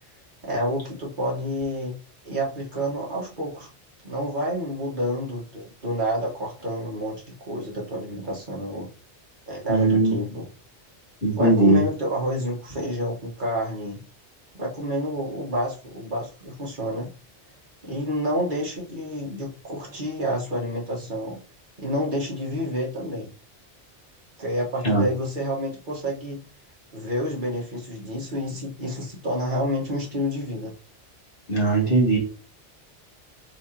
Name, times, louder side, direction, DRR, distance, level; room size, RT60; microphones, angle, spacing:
voice 1, 0.4-1.9 2.2-3.7 4.0-8.9 9.5-10.4 11.3-14.0 14.5-17.1 17.8-21.4 21.8-23.3 24.4-26.4 26.9-30.7, equal, 45° right, -3 dB, 1.5 m, -29 dB
voice 2, 9.7-10.1 11.2-11.8 24.8-25.1 31.5-32.2, right 2 dB, 50° left, -3 dB, 1.9 m, -19 dB
4.8 x 3.3 x 2.8 m, 0.36 s
omnidirectional pair, 1.2 m